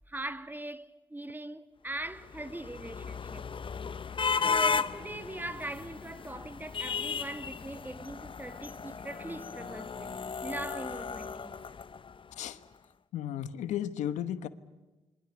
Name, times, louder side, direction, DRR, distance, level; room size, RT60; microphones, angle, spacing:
voice 1, 0.1-3.5 4.1-4.2 4.4-11.6, right 1 dB, 15° right, 2.0 m, -41 dB
sound 1, 2.1-12.4, left 5 dB, 45° left, 0.9 m, -35 dB
voice 2, 13.1-14.5, left 10 dB, 85° left, 1.2 m, -34 dB
27.5 x 23.5 x 8.2 m
supercardioid pair, 50°, 12 cm